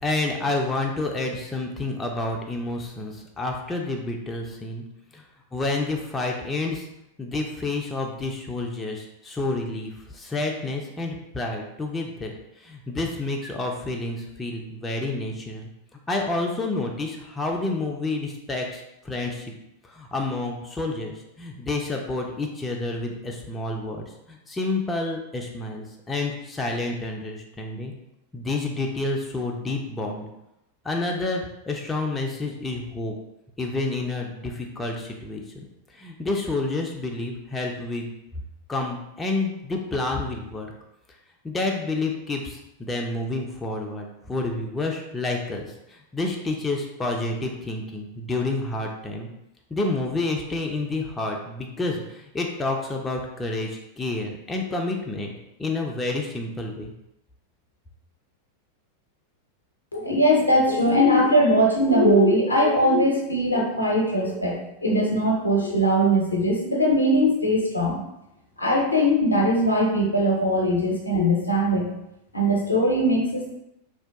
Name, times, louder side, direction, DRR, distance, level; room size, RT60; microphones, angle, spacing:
voice 1, 0.0-4.8 5.1-5.2 5.5-6.9 7.2-12.3 12.6-15.7 16.1-19.5 19.8-27.9 28.3-30.3 30.8-33.1 33.6-35.6 35.9-38.1 38.7-40.7 41.4-49.3 49.7-55.3 55.6-56.9, left 2 dB, 15° left, 1 dB, 0.3 m, -29 dB
voice 2, 59.9-64.6 64.8-68.0 68.6-71.9 72.3-73.5, equal, 80° left, -1 dB, 0.5 m, -20 dB
2.6 x 2.1 x 2.4 m, 0.85 s
figure-of-eight pair, 90°, 0 cm